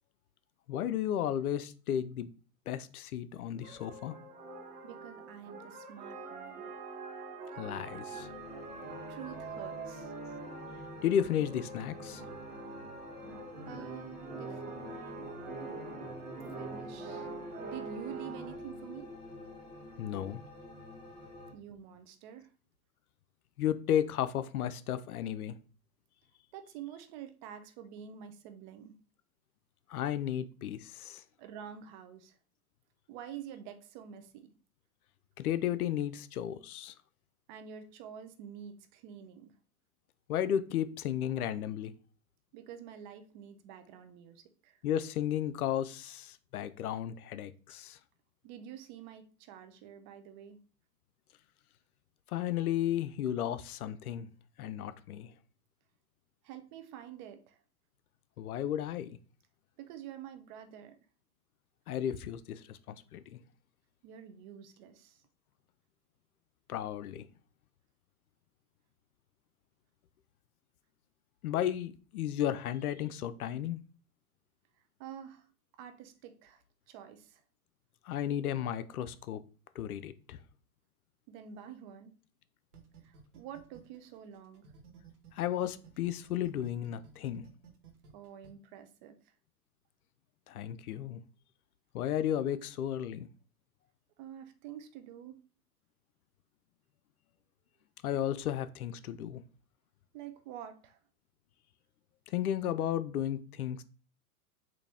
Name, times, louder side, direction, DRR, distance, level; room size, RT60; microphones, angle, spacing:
voice 1, 0.7-2.3 2.7-4.2 7.6-8.3 11.0-12.2 20.0-20.4 23.6-25.6 29.9-31.2 35.4-36.9 40.3-41.9 44.8-48.0 52.3-54.3 54.6-55.3 58.4-59.2 61.9-63.4 66.7-67.3 71.4-73.8 78.0-79.4 79.8-80.4 85.3-87.5 90.5-91.2 91.9-93.3 98.0-99.4 102.3-103.8, left 10 dB, 80° left, 0.6 m, -33 dB
sound 1, 3.6-18.6, right 4 dB, 20° right, 1.0 m, -44 dB
voice 2, 4.8-6.7 9.1-10.1 13.7-15.7 16.6-17.3 17.6-19.1 21.5-22.5 26.5-28.9 31.4-32.4 33.1-34.5 37.5-39.5 42.5-44.8 48.4-50.6 56.4-57.6 59.8-61.0 64.0-65.2 74.7-75.5 75.8-77.4 81.3-82.1 83.0-84.7 88.1-89.3 94.2-95.4 100.1-101.0, right 9 dB, 35° right, 0.5 m, -48 dB
sound 2, 8.1-21.5, left 2 dB, 10° left, 1.3 m, -48 dB
sound 3, 82.7-85.3 85.6-88.5, right 7 dB, 85° right, 1.2 m, -55 dB
4.0 x 2.6 x 3.4 m
hypercardioid pair, 115°, 44 cm